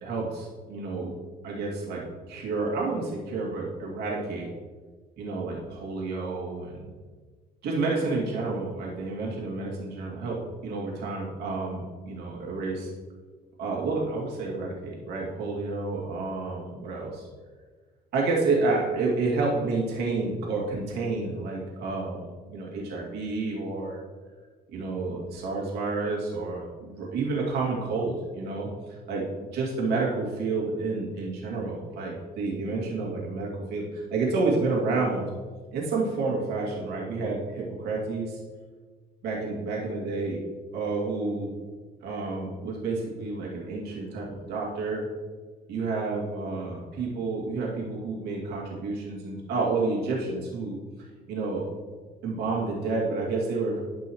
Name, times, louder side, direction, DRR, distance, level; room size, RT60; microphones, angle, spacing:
voice 1, 0.0-1.1 1.4-4.5 5.2-6.9 7.6-12.9 13.6-17.3 18.1-22.2 22.5-24.0 24.7-28.7 29.1-29.2 29.5-35.3 35.7-38.4 39.2-40.4 40.7-41.5 42.0-45.1 45.7-50.8 51.3-51.6 52.2-53.8, right 3 dB, 80° right, -3 dB, 2.3 m, -30 dB
12.5 x 5.5 x 3.1 m, 1.4 s
cardioid pair, 110°, 17 cm